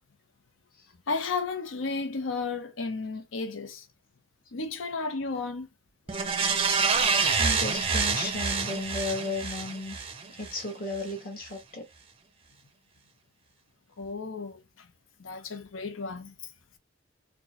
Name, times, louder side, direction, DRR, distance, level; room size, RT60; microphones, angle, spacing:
voice 1, 1.1-3.9 4.5-5.7 14.0-14.9 15.2-16.3, left 4 dB, 85° left, 0.7 m, -33 dB
sound 1, 6.1-10.6 11.0-11.1, right 5 dB, 30° right, 0.5 m, -27 dB
voice 2, 7.4-10.0 10.3-11.8, left 2 dB, 50° left, 1.4 m, -34 dB
4.3 x 2.1 x 2.9 m
head